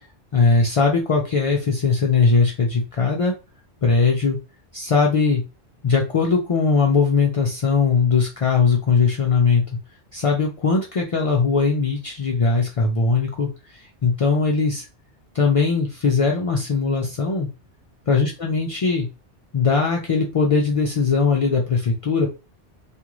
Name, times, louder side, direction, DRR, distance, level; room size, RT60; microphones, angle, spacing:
voice 1, 0.3-3.3 3.8-4.4 4.7-5.4 5.8-9.6 10.1-14.9 15.3-17.5 18.1-19.1 19.5-22.3, left 4 dB, 65° left, 0 dB, 0.3 m, -20 dB
2.5 x 2.4 x 3.0 m, 0.29 s
omnidirectional pair, 1.1 m